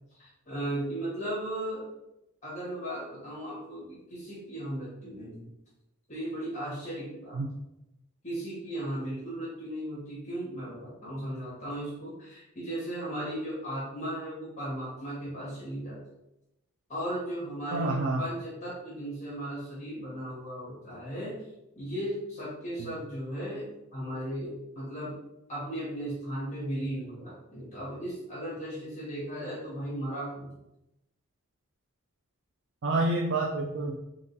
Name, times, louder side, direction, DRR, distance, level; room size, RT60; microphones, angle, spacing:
voice 1, 0.2-1.8 2.4-5.5 6.1-7.4 8.2-16.0 16.9-21.4 21.7-25.1 25.5-30.5, right 1 dB, 35° left, -8 dB, 1.4 m, -36 dB
voice 2, 17.7-18.2 22.8-22.9 32.8-34.0, right 2 dB, 55° right, -1 dB, 0.4 m, -28 dB
3.7 x 3.7 x 2.7 m, 0.89 s
head